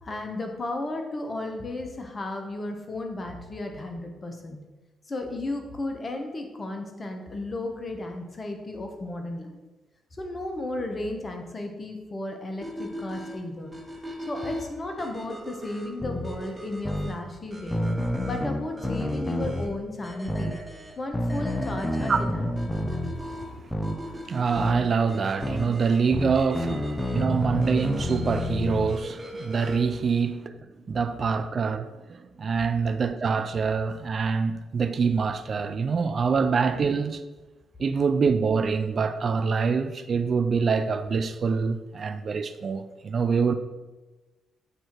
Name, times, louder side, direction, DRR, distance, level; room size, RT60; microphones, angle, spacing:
voice 1, 0.0-4.6 5.1-9.6 10.2-13.8 14.3-17.8 18.3-20.6 21.0-22.5, left 2 dB, 35° left, 1.1 m, -34 dB
sound 1, 12.6-30.0, right 1 dB, 20° right, 1.4 m, -41 dB
sound 2, 16.0-16.2 16.8-17.1 17.7-19.7 20.3-20.5 21.1-23.1 23.7-24.0 24.6-24.8 25.4-25.7 26.1-28.9, left 1 dB, 15° left, 0.7 m, -28 dB
voice 2, 24.1-37.2 37.8-43.5, right 5 dB, 50° right, 0.4 m, -25 dB
8.1 x 2.9 x 4.5 m
supercardioid pair, 50°, 0 cm